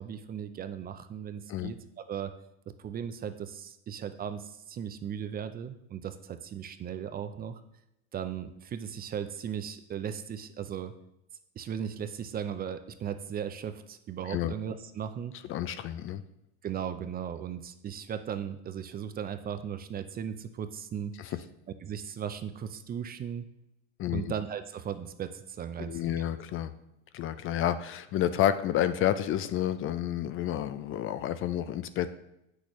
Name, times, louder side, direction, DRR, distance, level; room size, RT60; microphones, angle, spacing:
voice 1, 0.0-2.3 2.7-7.6 8.1-10.9 11.6-15.4 16.6-21.3 21.8-23.5 24.1-26.2, right 8 dB, 25° right, 10 dB, 0.5 m, -37 dB
voice 2, 15.5-16.2 21.2-21.3 24.0-24.3 25.9-26.7 27.1-32.1, left 11 dB, 40° left, 12 dB, 0.4 m, -30 dB
8.2 x 6.4 x 3.1 m, 0.84 s
supercardioid pair, 100°, 34 cm